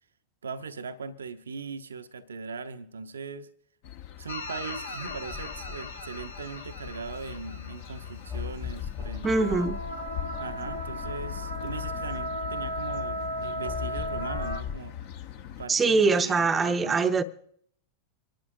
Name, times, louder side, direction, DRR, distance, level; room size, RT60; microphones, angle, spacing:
voice 1, 0.4-3.5 4.2-9.7 10.4-15.0 15.6-17.2, right 4 dB, 70° right, 0.7 m, -39 dB
sound 1, 3.8-15.7, left 10 dB, 50° left, 1.1 m, -41 dB
sound 2, 4.3-8.9 9.2-14.6, equal, 75° left, 1.3 m, -37 dB
sound 3, 5.1-7.7 8.3-13.0 13.6-14.8, left 8 dB, 20° left, 0.4 m, -40 dB
voice 2, 9.2-9.8 15.7-17.2, right 4 dB, 15° right, 0.7 m, -23 dB
26.0 x 11.5 x 2.6 m
figure-of-eight pair, 90°, 0 cm